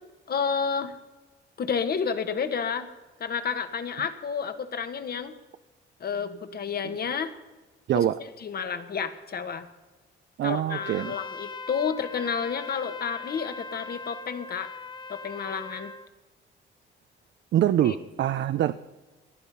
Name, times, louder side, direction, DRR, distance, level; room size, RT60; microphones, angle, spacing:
voice 1, 0.3-0.9 1.6-2.9 3.2-5.3 6.0-7.3 7.9-8.1 8.4-9.6 10.4-14.7 15.1-15.9 17.8-18.0, left 6 dB, 50° left, 9 dB, 1.6 m, -30 dB
voice 2, 7.9-8.2 10.4-11.1 17.5-18.7, right 11 dB, 65° right, 10 dB, 0.6 m, -24 dB
Trumpet, 10.7-16.1, left 3 dB, 20° left, 0.8 m, -40 dB
18.5 x 12.0 x 5.6 m, 1.2 s
cardioid pair, 90°, 20 cm